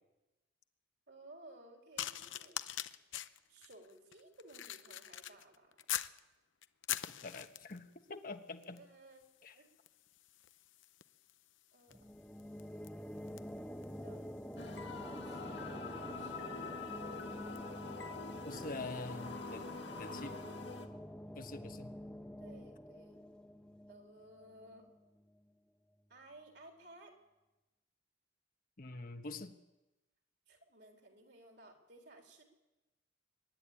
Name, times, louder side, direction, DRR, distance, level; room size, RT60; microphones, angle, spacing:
voice 1, 1.1-2.7 3.5-5.9 8.8-9.7 11.7-12.0 14.0-14.4 15.0-16.9 17.8-18.8 22.4-23.2 23.9-24.9 26.1-27.1 30.5-32.4, right 2 dB, 65° right, 3 dB, 3.8 m, -58 dB
sound 1, 2.0-6.2 6.6-7.9 8.6-8.9 9.2-18.8 19.5-19.7, left 12 dB, 90° left, 0.7 m, -46 dB
voice 2, 7.2-8.8 9.4-9.5 18.4-19.7 20.0-20.4 21.4-21.9 28.8-29.6, left 3 dB, 45° left, 7 dB, 1.2 m, -45 dB
sound 2, 11.9-25.3, equal, 5° left, 1.0 m, -48 dB
sound 3, 14.6-20.9, left 4 dB, 65° left, 1.8 m, -45 dB
24.5 x 11.0 x 9.9 m, 1.0 s
head